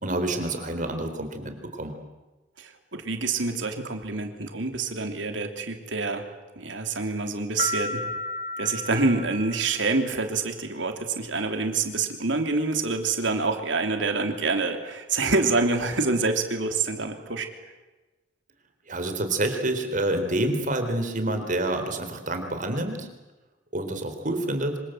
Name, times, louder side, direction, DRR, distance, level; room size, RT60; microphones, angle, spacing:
voice 1, 0.0-1.9 18.9-23.1 23.7-24.8, right 1 dB, 45° right, 7 dB, 3.9 m, -28 dB
voice 2, 2.6-6.2 6.6-8.1 8.6-17.5, right 3 dB, 90° right, 5 dB, 3.3 m, -26 dB
sound 1, 7.6-10.2, left 2 dB, 40° left, 0.9 m, -33 dB
26.0 x 25.5 x 8.0 m, 1.2 s
head